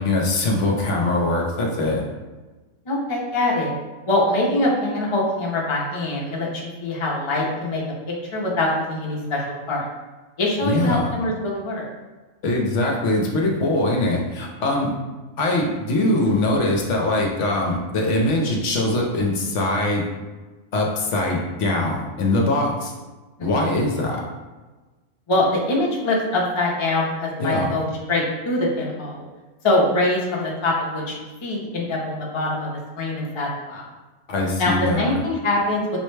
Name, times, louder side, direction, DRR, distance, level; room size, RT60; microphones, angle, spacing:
voice 1, 0.0-2.0 10.6-11.1 12.4-14.9 15.4-20.1 20.7-22.9 23.4-24.2 27.4-27.7 34.3-35.1, left 2 dB, 65° left, -1 dB, 0.9 m, -22 dB
voice 2, 2.9-3.7 4.1-7.8 8.3-9.9 10.4-11.9 23.4-23.7 25.3-29.2 29.6-32.7 33.0-33.8 34.6-36.0, left 1 dB, 35° left, -3 dB, 0.4 m, -23 dB
5.3 x 2.1 x 3.2 m, 1.2 s
omnidirectional pair, 1.5 m